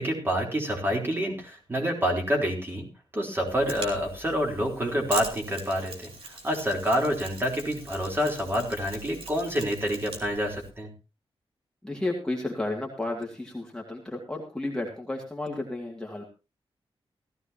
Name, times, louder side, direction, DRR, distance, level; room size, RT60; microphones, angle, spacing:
voice 1, 0.0-2.9 3.1-6.1 6.4-10.9, equal, 20° right, 1 dB, 3.9 m, -27 dB
Mechanisms, 3.5-10.7, right 3 dB, 70° right, 3.4 m, -42 dB
voice 2, 11.8-16.2, left 2 dB, 5° left, -1 dB, 2.3 m, -32 dB
16.5 x 14.5 x 2.9 m, 0.30 s
wide cardioid pair, 140°, 10 cm